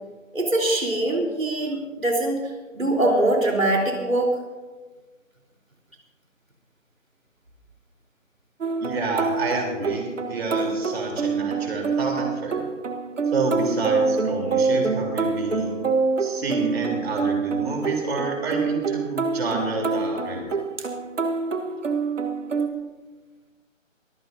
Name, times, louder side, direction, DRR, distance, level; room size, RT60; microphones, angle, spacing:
voice 1, 0.3-2.4 2.7-4.3, right 1 dB, 90° right, 0 dB, 3.9 m, -22 dB
sound 1, 8.6-22.7, right 4 dB, 65° right, 1.4 m, -26 dB
voice 2, 8.8-12.7 13.2-15.8 16.2-20.6, right 3 dB, 50° right, 1 dB, 3.6 m, -29 dB
23.5 x 15.5 x 2.7 m, 1.3 s
figure-of-eight pair, 150°, 39 cm